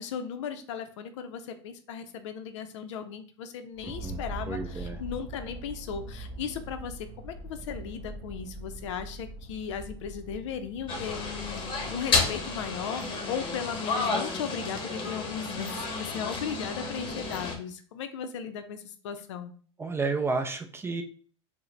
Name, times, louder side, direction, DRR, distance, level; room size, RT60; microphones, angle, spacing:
voice 1, 0.0-19.5, left 7 dB, 70° left, 8 dB, 0.5 m, -37 dB
sound 1, 3.7-13.4, right 1 dB, 30° right, 1.3 m, -42 dB
voice 2, 3.8-5.0 19.8-21.0, right 4 dB, 15° right, 6 dB, 0.4 m, -32 dB
sound 2, 10.9-17.6, left 3 dB, 35° left, 1.0 m, -31 dB
4.5 x 2.1 x 3.2 m, 0.43 s
hypercardioid pair, 95°, 16 cm